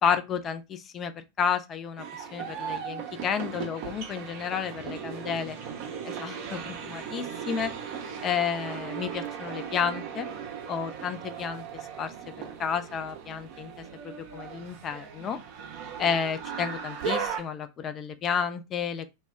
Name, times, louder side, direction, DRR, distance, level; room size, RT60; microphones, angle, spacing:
voice 1, 0.0-5.6 6.1-7.7 8.2-10.3 10.7-11.6 12.0-12.1 12.6-15.4 16.0-19.1, left 7 dB, 30° left, 0.3 m, -31 dB
sound 1, 2.0-17.4, right 7 dB, 45° right, 0.5 m, -37 dB
2.1 x 2.0 x 3.4 m
figure-of-eight pair, 90°, 0 cm